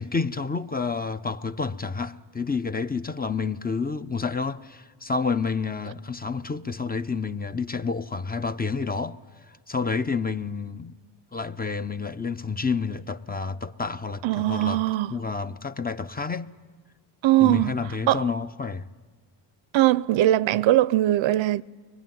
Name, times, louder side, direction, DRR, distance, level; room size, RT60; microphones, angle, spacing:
voice 1, 0.0-9.2 9.7-11.0 11.3-14.8 15.1-16.5 17.4-18.9, left 4 dB, 20° left, 0.7 m, -29 dB
voice 2, 14.2-15.1 17.2-17.8 18.1-18.2 19.7-21.6, right 15 dB, 70° right, 0.7 m, -20 dB
23.5 x 21.5 x 9.3 m
cardioid pair, 85°, 49 cm